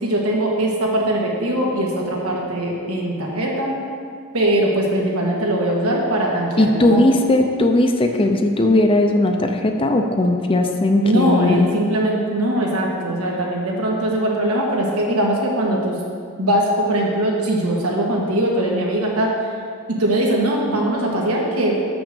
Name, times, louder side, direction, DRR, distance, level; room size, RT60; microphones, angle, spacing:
voice 1, 0.0-3.8 4.3-7.0 11.0-16.0 16.4-19.3 19.9-21.8, right 1 dB, 90° right, -2 dB, 1.6 m, -21 dB
voice 2, 6.6-11.7, left 1 dB, 25° left, 4 dB, 0.5 m, -17 dB
6.3 x 6.0 x 6.8 m, 2.2 s
head